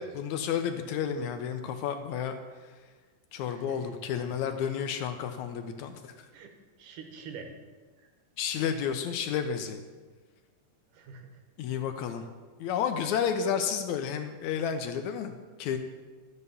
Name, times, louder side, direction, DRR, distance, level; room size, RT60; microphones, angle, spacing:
voice 1, 0.1-2.7 3.3-6.1 8.4-9.8 11.6-12.3 12.6-15.8, left 8 dB, 75° left, 7 dB, 1.8 m, -31 dB
voice 2, 3.5-4.4 6.3-6.5 6.8-7.5 8.0-8.1 10.9-11.4, right 5 dB, 80° right, 4 dB, 2.7 m, -46 dB
13.0 x 5.4 x 6.8 m, 1.4 s
omnidirectional pair, 3.7 m